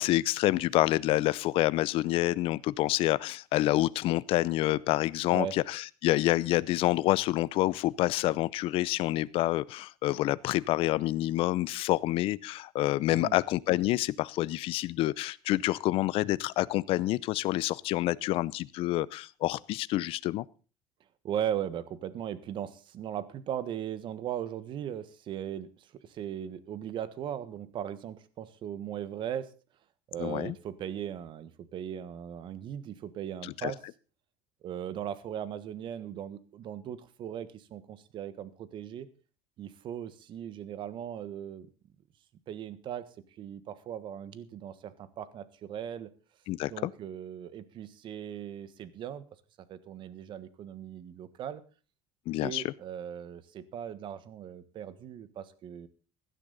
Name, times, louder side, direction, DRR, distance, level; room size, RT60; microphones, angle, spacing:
voice 1, 0.0-20.4 30.2-30.5 33.4-33.7 46.5-46.9 52.3-52.7, left 16 dB, 60° left, 20 dB, 0.6 m, -28 dB
voice 2, 21.2-29.5 30.1-33.8 34.6-39.1 39.6-41.7 42.5-43.1 43.4-46.1 46.7-49.2 49.7-51.6 52.4-55.9, right 10 dB, 50° right, 15 dB, 1.4 m, -38 dB
16.5 x 11.5 x 4.0 m, 0.36 s
cardioid pair, 125°, 11 cm